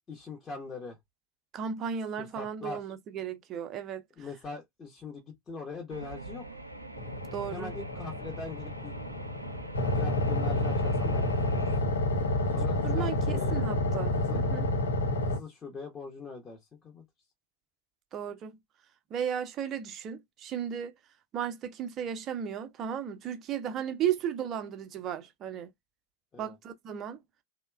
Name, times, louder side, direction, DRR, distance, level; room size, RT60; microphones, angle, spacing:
voice 1, 0.1-1.0 2.2-2.8 4.2-6.5 7.5-8.9 9.9-11.3 11.5-11.8 12.5-13.6 14.1-14.4 15.2-17.0 26.3-26.5, left 4 dB, 20° left, 0.8 m, -42 dB
voice 2, 1.5-4.0 7.3-7.7 12.8-13.2 13.5-14.7 18.1-18.6 19.1-21.0 21.3-25.7 26.4-27.2, right 8 dB, 30° right, 0.5 m, -35 dB
sound 1, 5.9-11.8, right 2 dB, 85° right, 0.5 m, -44 dB
sound 2, 7.0-15.4, left 1 dB, 70° left, 0.7 m, -29 dB
2.9 x 2.1 x 2.2 m
figure-of-eight pair, 90°, 0 cm